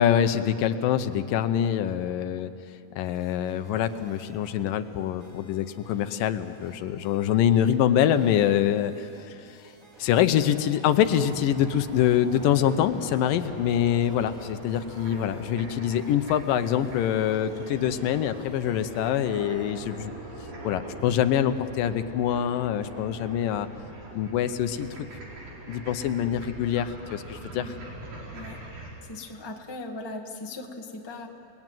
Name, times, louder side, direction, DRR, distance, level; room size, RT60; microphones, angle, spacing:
voice 1, 0.0-2.5 3.0-9.4 10.0-20.1 20.6-23.7 24.1-25.0 25.7-27.7, left 10 dB, 80° left, 10 dB, 2.5 m, -25 dB
sound 1, 3.0-19.7, right 1 dB, 20° right, 4.7 m, -53 dB
sound 2, 10.9-28.9, right 1 dB, 80° right, 6.2 m, -42 dB
voice 2, 28.3-28.6 29.0-31.3, left 2 dB, 15° left, 2 dB, 0.9 m, -39 dB
30.0 x 19.5 x 9.2 m, 2.7 s
omnidirectional pair, 4.0 m